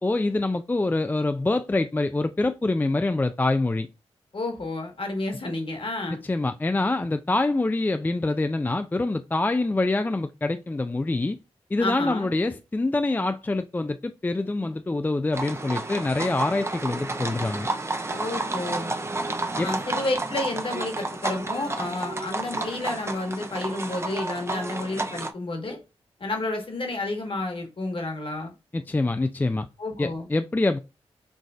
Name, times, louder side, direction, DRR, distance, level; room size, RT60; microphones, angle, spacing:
voice 1, 0.0-3.9 6.2-11.4 11.7-17.7 19.6-19.7 28.7-29.7 30.0-30.8, left 2 dB, 15° left, 0.3 m, -25 dB
voice 2, 4.3-6.2 11.8-12.3 18.1-18.9 19.6-25.8 26.2-28.5 29.8-30.3, left 2 dB, 55° left, 1.5 m, -30 dB
sound 1, 15.3-25.3, right 2 dB, 25° right, 0.6 m, -31 dB
5.8 x 2.5 x 2.5 m
cardioid pair, 45°, 11 cm